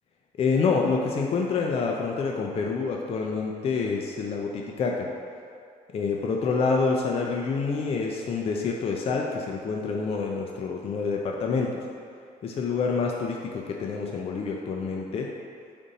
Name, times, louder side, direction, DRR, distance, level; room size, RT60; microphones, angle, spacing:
voice 1, 0.3-5.1 5.9-11.8 12.4-15.3, left 4 dB, 35° left, 0 dB, 0.4 m, -27 dB
5.1 x 2.6 x 4.0 m, 2.4 s
cardioid pair, 110°, 17 cm